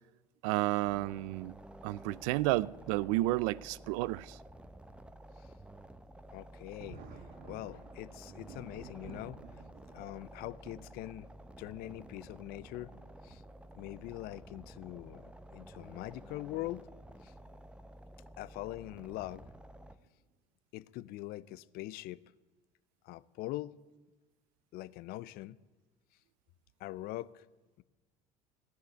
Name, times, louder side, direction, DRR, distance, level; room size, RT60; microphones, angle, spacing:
voice 1, 0.4-1.6 1.8-4.4, right 19 dB, 80° right, 0.4 m, -31 dB
sound 1, 0.8-20.0, right 1 dB, 5° right, 0.8 m, -52 dB
voice 2, 6.3-7.0 7.4-9.4 9.9-11.3 11.6-12.9 13.2-13.4 13.7-16.9 17.2-17.3 18.4-19.5 20.7-22.2 23.1-23.8 24.7-25.6 26.8-27.4, left 16 dB, 65° left, 0.5 m, -43 dB
Thunder, 6.7-13.8 14.8-14.9 16.4-16.6 17.0-17.1 19.0-19.3 20.0-20.3, right 5 dB, 60° right, 1.5 m, -55 dB
15.5 x 6.5 x 9.9 m
supercardioid pair, 85°, 17 cm